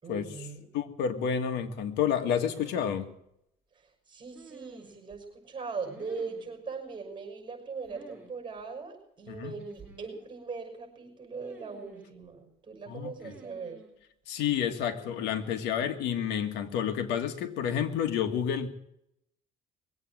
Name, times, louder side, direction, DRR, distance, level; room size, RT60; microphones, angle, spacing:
voice 1, 0.0-0.7 3.7-13.8, right 5 dB, 30° right, 3 dB, 6.0 m, -40 dB
voice 2, 0.7-3.1 9.3-9.5 12.9-13.1 14.3-18.7, left 8 dB, 85° left, 7 dB, 1.8 m, -29 dB
sound 1, 2.3-3.0 4.3-5.2 5.8-6.6 7.8-8.3 8.6-8.7 9.6-10.3 11.4-12.2 13.2-14.0 14.9-15.7, right 2 dB, 10° right, 6.6 m, -51 dB
21.5 x 8.6 x 7.6 m, 0.78 s
cardioid pair, 110°, 17 cm